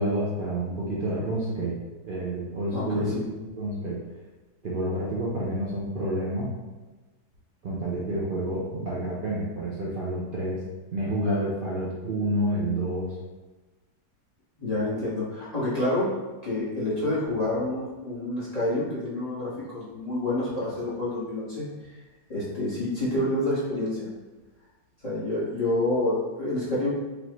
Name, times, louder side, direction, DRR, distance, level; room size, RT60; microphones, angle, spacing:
voice 1, 0.0-1.7 2.0-4.0 4.6-6.5 7.6-10.6 10.9-13.1, right 1 dB, 85° right, -6 dB, 0.4 m, -29 dB
voice 2, 2.7-3.2 14.6-21.6 22.3-24.1 25.0-26.9, left 1 dB, 25° left, -9 dB, 1.3 m, -28 dB
5.1 x 2.6 x 3.0 m, 1.2 s
omnidirectional pair, 1.9 m